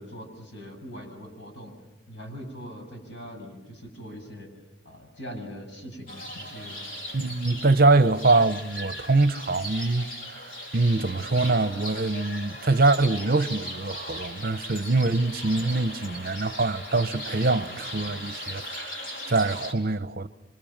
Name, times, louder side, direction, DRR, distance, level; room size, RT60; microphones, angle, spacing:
voice 1, 0.0-1.7 2.1-4.5 4.8-6.8, equal, 65° left, 8.0 m, -41 dB
sound 1, 6.1-19.7, equal, 50° left, 4.3 m, -38 dB
voice 2, 7.1-10.4 10.7-20.3, right 3 dB, 50° right, 0.9 m, -24 dB
29.0 x 25.5 x 7.5 m
head